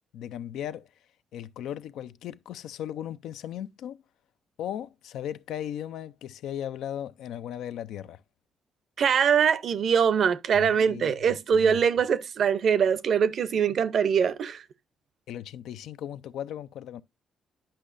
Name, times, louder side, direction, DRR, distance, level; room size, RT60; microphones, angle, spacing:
voice 1, 0.1-0.9 1.3-4.0 4.6-8.2 10.5-11.8 15.3-17.0, left 10 dB, 80° left, 0.4 m, -37 dB
voice 2, 9.0-14.6, right 7 dB, 60° right, 0.6 m, -23 dB
10.0 x 5.4 x 2.5 m
cardioid pair, 90°, 0 cm